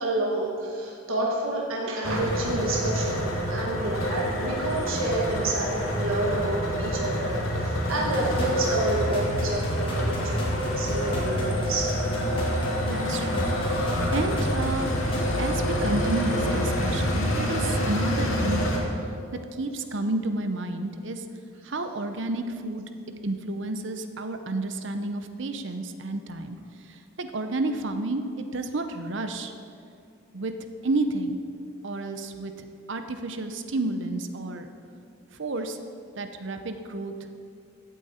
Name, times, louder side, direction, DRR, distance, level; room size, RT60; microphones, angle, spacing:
voice 1, 0.0-11.9, right 2 dB, 80° right, -2 dB, 1.5 m, -29 dB
sound 1, 2.0-18.8, equal, 85° left, 1.8 m, -27 dB
sound 2, 7.9-15.4 15.8-15.9, equal, 25° left, 2.0 m, -38 dB
voice 2, 12.9-13.5 13.7-14.9 15.4-18.8 19.3-21.2 21.6-22.8 23.2-26.6 26.8-29.5 30.3-30.5 30.8-31.4 31.8-34.7 35.4-35.8 36.2-37.1, right 2 dB, 60° right, 8 dB, 0.7 m, -31 dB
15.0 x 8.6 x 4.3 m, 2.4 s
head